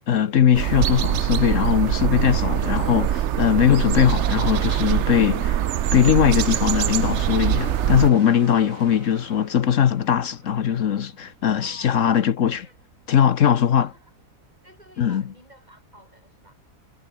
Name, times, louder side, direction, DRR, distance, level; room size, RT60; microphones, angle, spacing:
voice 1, 0.1-5.7 5.9-12.7 13.1-13.9 15.0-15.2, left 9 dB, 70° left, 1.3 m, -20 dB
sound 1, 0.5-8.1, right 11 dB, 65° right, 0.9 m, -23 dB
sound 2, 2.8-15.3, right 5 dB, 85° right, 2.7 m, -45 dB
voice 2, 11.5-12.8 13.6-14.1 14.6-16.5, right 1 dB, 30° right, 8.2 m, -52 dB
omnidirectional pair, 1.4 m